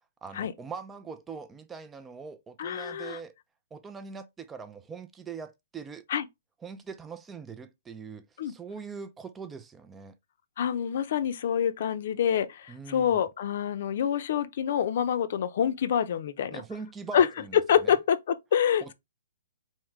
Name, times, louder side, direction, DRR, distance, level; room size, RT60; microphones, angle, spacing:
voice 1, 0.2-3.3 3.7-6.0 6.6-10.1 12.7-13.2 16.5-17.9 18.8-18.9, right 5 dB, 10° right, 0.4 m, -42 dB
voice 2, 2.6-3.2 6.1-6.2 8.4-8.5 10.6-16.6 17.1-17.3 17.5-18.9, left 9 dB, 55° left, 0.6 m, -26 dB
4.3 x 3.6 x 3.1 m
hypercardioid pair, 160°, 0 cm